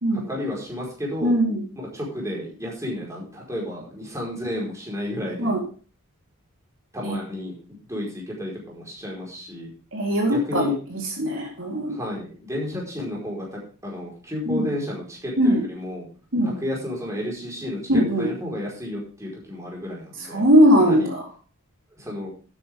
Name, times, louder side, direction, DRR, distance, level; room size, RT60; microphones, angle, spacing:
voice 1, 0.1-1.3 1.8-5.5 6.9-9.7 10.3-10.8 11.9-16.1 16.4-20.4 20.8-21.1 22.0-22.3, left 1 dB, 15° right, -3 dB, 4.9 m, -32 dB
voice 2, 1.2-1.6 5.4-5.6 7.0-7.2 9.9-12.0 14.5-14.7 15.4-15.6 16.3-16.6 17.9-18.3 20.3-21.2, equal, 60° right, -1 dB, 3.8 m, -20 dB
12.5 x 9.5 x 3.6 m, 0.39 s
head